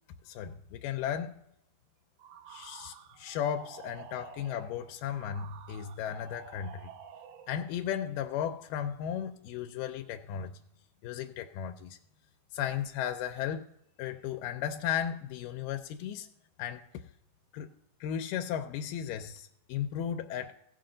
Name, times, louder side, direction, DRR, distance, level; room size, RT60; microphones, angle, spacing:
voice 1, 0.3-1.4 2.5-6.9 7.5-10.6 11.0-12.0 12.5-13.7 14.0-16.3 16.6-16.8 17.5-17.7 18.0-20.5, left 9 dB, 90° left, 2.2 m, -35 dB
sound 1, 2.2-7.6, right 8 dB, 80° right, 2.3 m, -50 dB
16.0 x 6.5 x 3.8 m
omnidirectional pair, 3.7 m